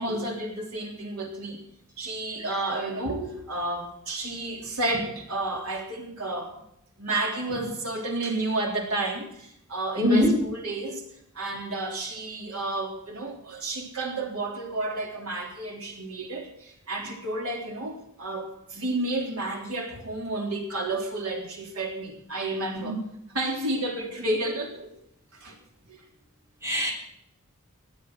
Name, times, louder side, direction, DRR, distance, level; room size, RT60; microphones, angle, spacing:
voice 1, 0.0-1.6 2.0-6.6 7.0-11.1 11.4-23.0 23.3-24.9 25.3-25.6 25.9-26.0, right 2 dB, 80° right, 1 dB, 3.5 m, -31 dB
voice 2, 10.0-10.4 22.8-22.9 26.6-26.9, left 1 dB, 15° right, -1 dB, 3.5 m, -21 dB
16.0 x 11.0 x 6.2 m, 0.75 s
head